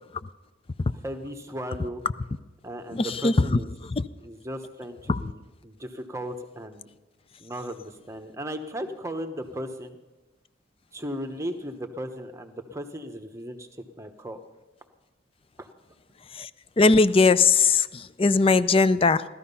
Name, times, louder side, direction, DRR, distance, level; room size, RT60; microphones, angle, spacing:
voice 1, 1.0-2.0 2.6-3.7 4.2-6.9 7.4-10.0 10.9-14.4 15.6-15.7, equal, 15° right, 7 dB, 1.0 m, -36 dB
voice 2, 2.9-3.6 3.9-4.0 5.1-5.2 16.3-16.5 16.8-19.2, left 4 dB, 25° left, 15 dB, 0.4 m, -20 dB
17.0 x 13.0 x 5.5 m, 1.1 s
head